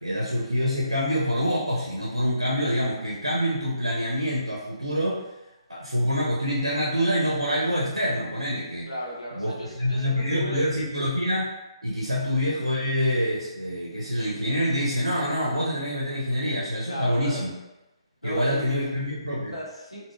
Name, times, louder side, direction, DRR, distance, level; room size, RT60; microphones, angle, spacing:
voice 1, 0.0-5.2 5.7-8.9 9.4-11.5 11.8-17.5 18.2-19.5, equal, 85° right, -4 dB, 0.5 m, -26 dB
voice 2, 8.9-10.7 12.0-12.3 16.9-17.5 18.2-19.0 19.5-20.1, equal, 90° left, -4 dB, 0.8 m, -36 dB
3.5 x 2.0 x 2.3 m, 0.98 s
figure-of-eight pair, 135°, 3 cm